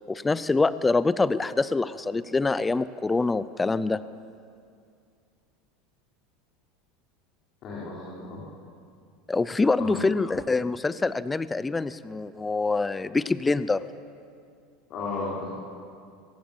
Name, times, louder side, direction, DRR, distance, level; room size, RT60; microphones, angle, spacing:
voice 1, 0.1-4.0 9.3-13.8, left 3 dB, 10° left, 16 dB, 0.4 m, -25 dB
voice 2, 7.6-8.4 9.8-10.0 14.9-15.6, left 3 dB, 35° left, -6 dB, 4.2 m, -34 dB
22.5 x 18.5 x 7.3 m, 2.3 s
supercardioid pair, 170°, 0 cm